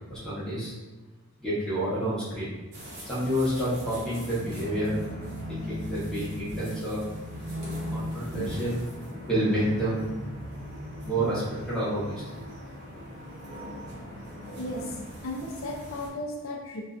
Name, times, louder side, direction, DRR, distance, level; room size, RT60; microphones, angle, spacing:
voice 1, 0.1-0.7 1.4-2.6 3.0-5.0 5.5-7.0 7.9-8.8 9.3-10.1 11.0-12.2, right 1 dB, 5° left, -11 dB, 0.9 m, -29 dB
sound 1, 2.7-16.1, left 1 dB, 50° right, 0.8 m, -38 dB
voice 2, 14.6-16.8, left 1 dB, 65° left, 0 dB, 0.5 m, -35 dB
2.5 x 2.3 x 2.3 m, 1.2 s
head